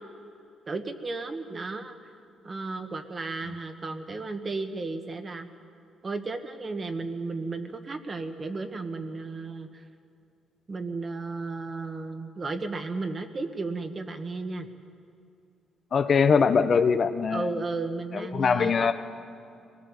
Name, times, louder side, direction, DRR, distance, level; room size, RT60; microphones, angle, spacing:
voice 1, 0.7-2.0 2.4-5.5 6.0-9.8 10.7-14.7 17.3-18.9, right 3 dB, 35° right, 7 dB, 1.6 m, -34 dB
voice 2, 15.9-17.5 18.1-18.9, left 5 dB, 50° left, 8 dB, 1.1 m, -22 dB
23.0 x 18.5 x 7.3 m, 2.5 s
cardioid pair, 90°, 0 cm